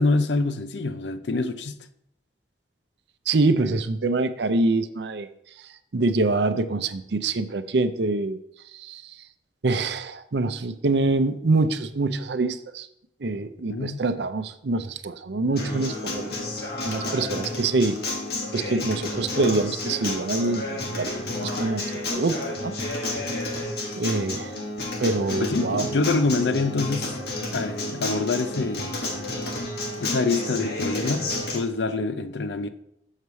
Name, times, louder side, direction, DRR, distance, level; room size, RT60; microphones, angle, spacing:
voice 1, 0.0-1.8 13.7-14.0 25.4-27.1 27.5-28.9 30.0-32.7, left 3 dB, 85° left, 0.6 m, -25 dB
voice 2, 3.3-5.3 5.9-8.4 8.7-9.0 9.6-12.9 13.2-16.3 16.8-18.0 18.5-20.6 21.0-21.1 21.4-22.7 24.0-24.6 25.0-25.9, right 3 dB, 70° right, 0.6 m, -25 dB
Acoustic guitar, 15.6-31.6, left 2 dB, 65° left, 1.8 m, -31 dB
6.6 x 4.7 x 6.9 m
head